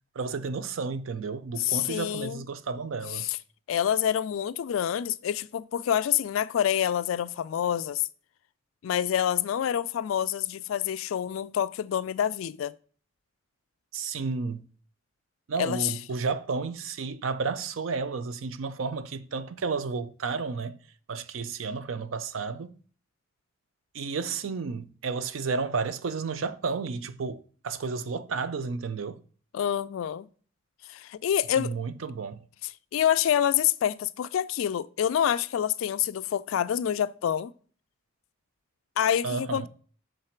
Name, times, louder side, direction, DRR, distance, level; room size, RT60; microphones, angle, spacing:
voice 1, 0.2-3.3 13.9-14.6 15.5-20.8 21.1-22.7 23.9-29.2 31.6-32.4 39.2-39.7, right 4 dB, 75° right, 0.5 m, -32 dB
voice 2, 1.6-2.4 3.1-3.4 3.7-8.1 8.8-12.7 15.6-15.9 29.5-30.3 30.9-31.7 32.9-37.5 39.0-39.7, left 10 dB, 80° left, 0.3 m, -27 dB
6.5 x 4.0 x 4.4 m
head